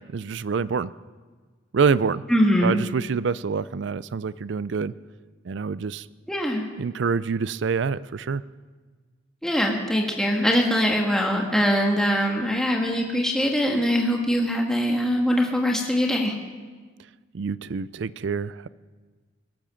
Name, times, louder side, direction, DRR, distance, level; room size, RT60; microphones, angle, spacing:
voice 1, 0.1-0.9 1.7-2.2 2.6-4.9 5.4-6.1 6.7-8.4 17.3-18.7, right 5 dB, 60° right, 18 dB, 0.4 m, -26 dB
voice 2, 2.3-2.8 6.3-6.6 9.4-16.3, equal, 5° left, 0 dB, 1.4 m, -22 dB
21.0 x 8.7 x 6.4 m, 1.4 s
head